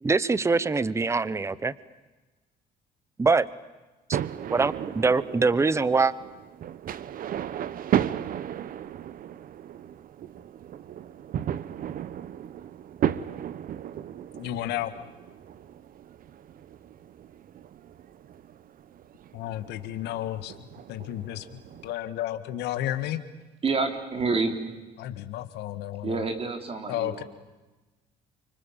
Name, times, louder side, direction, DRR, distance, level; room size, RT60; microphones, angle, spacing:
voice 1, 0.0-1.7 3.2-3.5 4.1-4.2 4.5-6.1, right 4 dB, 15° right, 18 dB, 0.9 m, -23 dB
sound 1, 4.1-21.9, right 10 dB, 55° right, 1.1 m, -35 dB
voice 2, 14.3-14.9 19.3-20.6 20.9-21.5 21.8-23.2 25.0-26.2 26.9-27.2, left 13 dB, 85° left, 10 dB, 1.8 m, -32 dB
voice 3, 23.6-24.5 26.0-27.2, right 4 dB, 35° right, 6 dB, 3.8 m, -28 dB
29.0 x 25.5 x 7.4 m, 1.2 s
cardioid pair, 110°, 17 cm